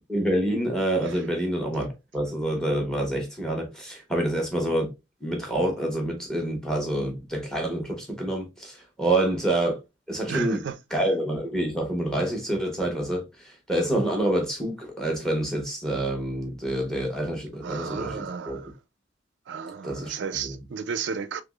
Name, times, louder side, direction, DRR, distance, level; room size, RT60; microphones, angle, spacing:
voice 1, 0.1-4.9 5.2-9.8 10.1-10.6 10.9-18.6 19.8-20.5, right 1 dB, 5° left, 1.0 m, -27 dB
voice 2, 10.3-11.2 17.6-18.7 19.5-21.4, right 6 dB, 60° right, 0.4 m, -34 dB
3.5 x 3.0 x 2.3 m
head